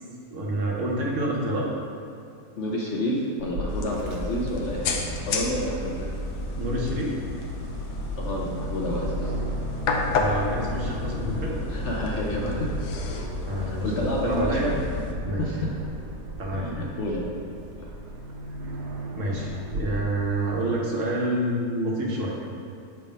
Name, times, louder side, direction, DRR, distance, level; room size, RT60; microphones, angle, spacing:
voice 1, 0.3-1.7 6.6-7.1 10.1-11.6 13.4-14.7 15.2-15.6 16.4-16.7 19.1-22.3, right 1 dB, 55° right, -3 dB, 1.2 m, -28 dB
voice 2, 2.6-6.1 8.2-9.3 11.7-12.8 13.5-14.8 15.4-15.7 16.5-17.3 17.8-17.9, equal, 60° left, -3 dB, 0.8 m, -29 dB
Aircraft, 3.4-19.8, right 1 dB, 85° right, 1.3 m, -37 dB
sound 1, 3.7-15.1, left 3 dB, 85° left, 1.2 m, -31 dB
6.5 x 3.5 x 5.2 m, 2.4 s
omnidirectional pair, 1.7 m